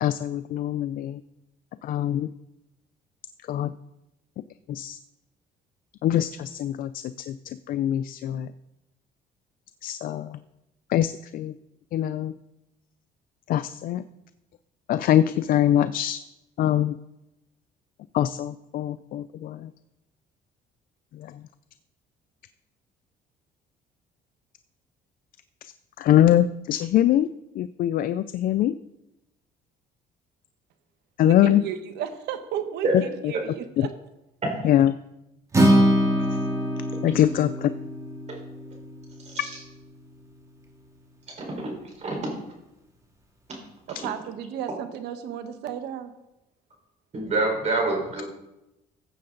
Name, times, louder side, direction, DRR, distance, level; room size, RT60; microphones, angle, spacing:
voice 1, 0.0-1.2 1.8-2.3 3.4-3.7 4.7-5.0 6.0-8.5 9.8-10.4 10.9-11.6 11.9-12.3 13.5-14.0 14.9-16.2 16.6-17.0 18.1-19.7 21.1-21.4 25.6-27.3 27.5-28.8 31.2-31.6 32.9-33.3 33.8-33.9 34.6-35.0 37.0-37.7, left 11 dB, 55° left, 14 dB, 0.4 m, -23 dB
voice 2, 31.2-33.9 43.9-46.1, right 9 dB, 80° right, 9 dB, 1.2 m, -33 dB
Acoustic guitar, 35.5-39.8, equal, 20° right, 2.1 m, -24 dB
voice 3, 41.4-41.7 42.0-42.3 47.1-48.2, right 2 dB, 40° right, 0 dB, 4.4 m, -26 dB
14.5 x 7.6 x 3.8 m, 0.93 s
cardioid pair, 110°, 17 cm